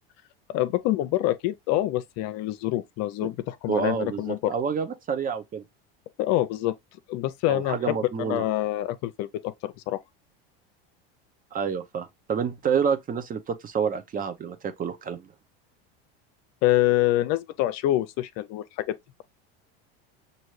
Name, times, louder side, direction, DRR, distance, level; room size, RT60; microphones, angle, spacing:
voice 1, 0.5-4.5 6.2-6.7 7.1-10.0 16.6-18.9, left 15 dB, 60° left, 0.6 m, -26 dB
voice 2, 3.7-5.6 7.5-8.4 11.5-15.3, right 6 dB, 30° right, 0.7 m, -28 dB
6.2 x 2.7 x 3.1 m
supercardioid pair, 110°, 30 cm